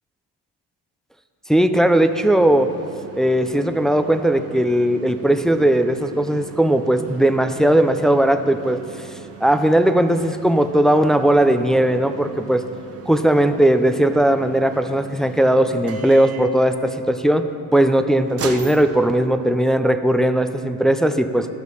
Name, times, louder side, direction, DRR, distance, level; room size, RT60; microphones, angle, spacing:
voice 1, 1.5-2.7 3.2-8.8 9.4-12.6 13.1-17.5 17.7-21.5, right 1 dB, ahead, 8 dB, 0.4 m, -18 dB
sound 1, 1.9-19.7, right 7 dB, 40° right, 0.9 m, -40 dB
13.5 x 6.3 x 5.4 m, 2.7 s
cardioid pair, 95°, 37 cm